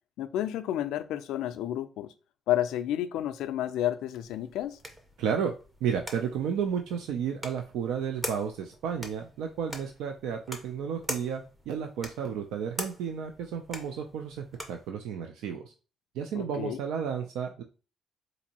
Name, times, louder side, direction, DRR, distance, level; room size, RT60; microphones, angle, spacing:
voice 1, 0.2-2.1 2.5-4.8 16.4-16.8, left 12 dB, 80° left, 0.3 m, -31 dB
sound 1, 4.2-14.9, equal, 10° right, 0.5 m, -43 dB
voice 2, 5.2-5.5 5.8-15.6 16.1-17.6, right 7 dB, 85° right, 0.4 m, -32 dB
4.0 x 2.6 x 2.8 m
cardioid pair, 180°, 0 cm